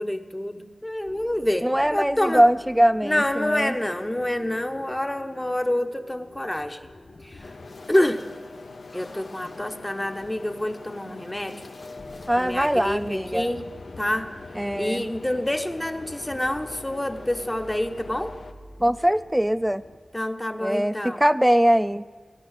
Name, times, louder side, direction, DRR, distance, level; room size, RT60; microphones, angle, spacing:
voice 1, 0.0-2.4 3.0-6.9 7.2-7.5 7.9-8.2 8.9-11.6 12.4-13.6 14.0-14.3 14.7-18.3 20.1-21.2, left 1 dB, 15° left, 7 dB, 0.8 m, -27 dB
sound 1, 1.0-20.0, left 2 dB, 55° left, 1.6 m, -47 dB
voice 2, 1.6-3.8 12.3-13.5 14.5-15.0 18.8-19.8 20.6-22.1, equal, 5° right, 14 dB, 0.4 m, -22 dB
sound 2, 7.4-18.5, left 3 dB, 75° left, 0.8 m, -43 dB
17.0 x 11.5 x 6.4 m, 1.5 s
wide cardioid pair, 85°, 0 cm